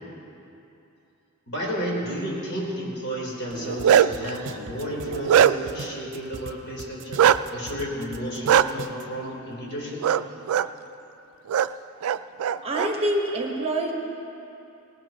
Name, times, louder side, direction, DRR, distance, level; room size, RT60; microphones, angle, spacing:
voice 1, 1.5-10.0, equal, 60° left, -4 dB, 4.0 m, -32 dB
Bark, 3.5-4.3 4.8-5.8 7.2-7.4 8.5-8.6 10.0-10.2 10.5-10.7 11.5-11.7 12.0-12.9, right 9 dB, 75° right, 0.3 m, -19 dB
sound 1, 3.8-3.9 4.1-6.5 6.8-9.0, right 3 dB, 60° right, 0.8 m, -39 dB
voice 2, 12.6-13.9, right 1 dB, 30° right, 0 dB, 1.3 m, -26 dB
19.0 x 19.0 x 3.0 m, 2.8 s
head